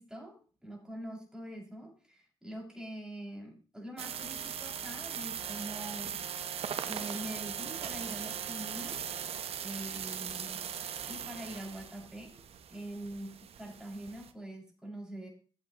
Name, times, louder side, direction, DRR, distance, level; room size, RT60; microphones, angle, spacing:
voice 1, 0.0-6.3 6.8-9.0 9.6-10.7 11.1-12.4 12.7-15.3, right 1 dB, 5° right, -1 dB, 6.1 m, -44 dB
sound 1, 4.0-14.3, right 8 dB, 65° right, 1.0 m, -39 dB
14.5 x 9.1 x 3.0 m, 0.36 s
supercardioid pair, 55°, 11 cm